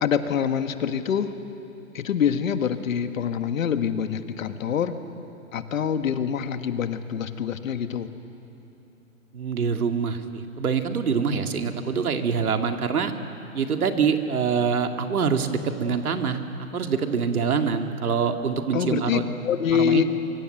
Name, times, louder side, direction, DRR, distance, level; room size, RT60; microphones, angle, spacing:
voice 1, 0.0-1.4 1.9-5.0 5.5-8.1 18.7-20.0, left 8 dB, 65° left, 9 dB, 1.7 m, -25 dB
voice 2, 9.3-13.1 13.5-16.4 16.7-19.2 19.8-20.0, right 6 dB, 80° right, 5 dB, 2.3 m, -25 dB
24.5 x 24.0 x 7.8 m, 3.0 s
hypercardioid pair, 135°, 43 cm